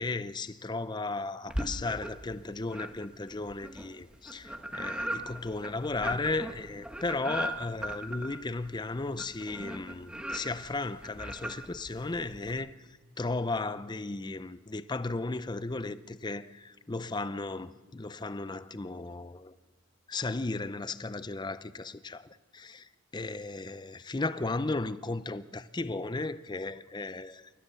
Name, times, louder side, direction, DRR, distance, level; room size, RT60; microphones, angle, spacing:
voice 1, 0.0-12.7 13.2-19.5 20.1-27.5, left 3 dB, 20° left, 0.6 m, -35 dB
sound 1, 1.5-2.3 2.7-12.5, right 1 dB, 5° right, 1.4 m, -38 dB
28.0 x 14.0 x 6.9 m
head